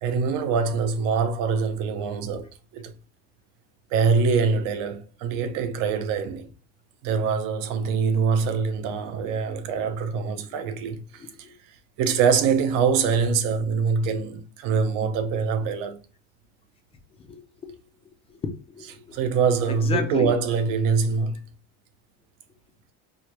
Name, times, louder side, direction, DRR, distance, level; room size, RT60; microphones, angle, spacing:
voice 1, 0.0-2.9 3.9-6.5 7.0-16.0 19.1-21.4, right 5 dB, 70° right, 0.7 m, -24 dB
voice 2, 17.3-17.8 18.4-19.3 19.7-20.4, left 5 dB, 20° left, 0.3 m, -33 dB
4.5 x 2.2 x 3.0 m
cardioid pair, 170°, 33 cm